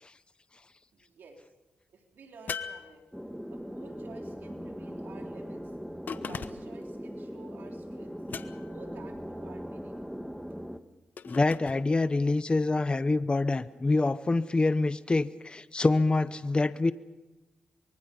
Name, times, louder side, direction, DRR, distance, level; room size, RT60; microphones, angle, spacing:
voice 1, 0.9-1.5 1.9-3.0 3.5-5.8 6.1-8.2 8.7-10.0, right 4 dB, 80° right, 2 dB, 3.9 m, -52 dB
sound 1, 2.5-3.6 6.1-6.8 8.3-8.9 11.2-11.8, left 6 dB, 65° left, 1.0 m, -39 dB
sound 2, 3.1-10.8, equal, ahead, 1.3 m, -40 dB
voice 2, 11.2-16.9, left 3 dB, 30° left, 14 dB, 0.8 m, -26 dB
24.5 x 23.5 x 5.5 m, 1.1 s
cardioid pair, 65°, 3 cm